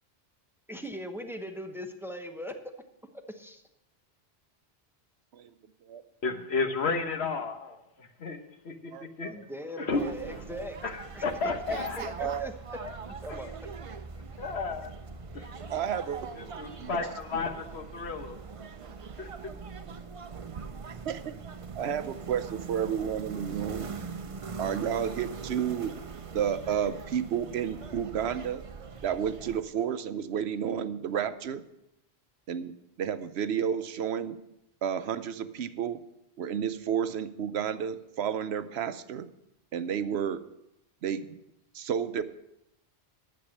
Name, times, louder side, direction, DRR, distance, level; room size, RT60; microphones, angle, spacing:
voice 1, 0.7-2.6 3.3-3.6 9.3-10.8 11.1-11.2 11.9-12.5 13.0-13.5 14.5-14.6, equal, ahead, 6 dB, 0.8 m, -40 dB
voice 2, 6.2-8.4 8.6-8.9 9.2-9.3 9.8-10.0 10.8-12.1 12.8-12.9 13.3-13.4 14.4-14.9 15.3-15.5 16.4-18.4 19.2-19.5, left 4 dB, 80° left, 6 dB, 1.4 m, -32 dB
voice 3, 8.9-9.3 12.2-12.5 15.4-15.5 15.7-16.3 16.8-17.0 18.8-19.2 21.0-21.3 21.7-23.9 24.6-25.9 26.3-28.6 29.0-31.6 32.5-34.4 34.8-36.0 36.4-39.3 39.7-40.4 41.0-41.4 41.7-42.2, right 8 dB, 80° right, 12 dB, 0.9 m, -31 dB
sound 1, 9.9-29.6, right 5 dB, 40° right, 0.6 m, -41 dB
10.0 x 8.1 x 6.4 m, 0.85 s
omnidirectional pair, 1.1 m